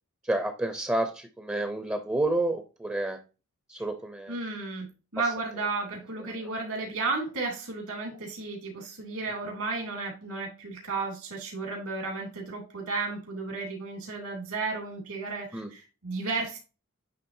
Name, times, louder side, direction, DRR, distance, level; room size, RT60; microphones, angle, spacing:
voice 1, 0.2-3.2 3.7-4.4 6.2-6.3 15.5-15.7, right 2 dB, 10° right, 6 dB, 0.7 m, -29 dB
voice 2, 4.3-16.6, right 3 dB, 75° right, 1 dB, 2.9 m, -33 dB
10.0 x 3.5 x 2.6 m, 0.32 s
head